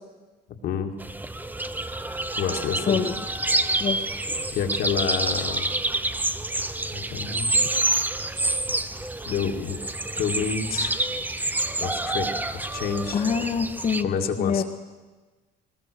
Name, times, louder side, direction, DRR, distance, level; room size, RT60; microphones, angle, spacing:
sound 1, 1.0-14.0, right 2 dB, 10° right, 0.8 m, -28 dB
voice 1, 2.4-3.0 4.5-5.7 6.9-7.5 9.3-9.8 10.2-11.0 11.8-13.2 14.0-14.6, left 6 dB, 65° left, 4 dB, 2.1 m, -28 dB
voice 2, 13.1-14.1 14.4-14.6, left 6 dB, 45° left, -1 dB, 1.4 m, -25 dB
20.5 x 19.5 x 6.8 m, 1.3 s
cardioid pair, 110°, 17 cm